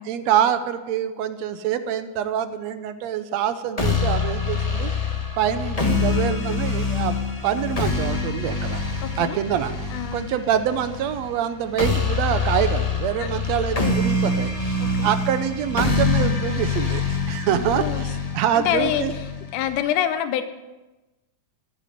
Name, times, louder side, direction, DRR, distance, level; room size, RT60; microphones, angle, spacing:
voice 1, 0.1-4.9 5.4-8.8 9.2-9.7 10.1-19.1, right 9 dB, 70° right, 10 dB, 1.9 m, -25 dB
sound 1, 3.8-19.8, left 3 dB, 60° left, 0.3 m, -25 dB
voice 2, 9.0-9.4 9.9-10.3 13.2-13.3 14.8-15.1 17.5-18.0 18.5-19.3 19.5-20.4, left 10 dB, 85° left, 10 dB, 2.4 m, -26 dB
14.5 x 8.2 x 9.2 m, 1.1 s
omnidirectional pair, 3.5 m